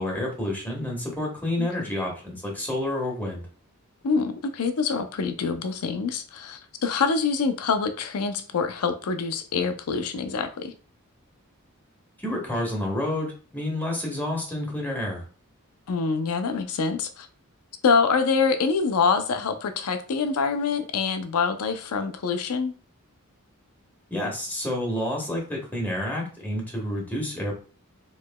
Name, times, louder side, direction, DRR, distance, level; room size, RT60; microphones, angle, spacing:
voice 1, 0.0-3.5 12.2-15.2 24.1-27.5, left 1 dB, 10° left, 1.3 m, -29 dB
voice 2, 4.0-10.7 15.9-17.3 17.8-22.7, left 5 dB, 90° left, 0.5 m, -25 dB
4.7 x 3.1 x 2.2 m
head